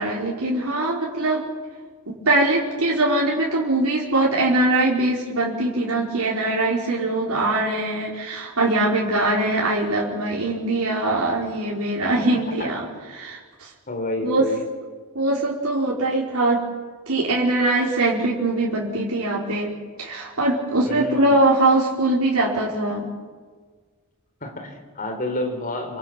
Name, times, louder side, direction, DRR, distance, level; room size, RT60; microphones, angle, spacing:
voice 1, 0.0-1.5 2.1-12.9 13.1-13.7 14.2-14.4 15.1-16.6 17.1-19.7 20.0-23.1, right 2 dB, 75° right, -4 dB, 5.0 m, -22 dB
voice 2, 13.9-14.6 20.9-21.4 24.4-26.0, left 1 dB, 40° left, 4 dB, 4.0 m, -29 dB
27.0 x 26.5 x 6.0 m, 1.5 s
head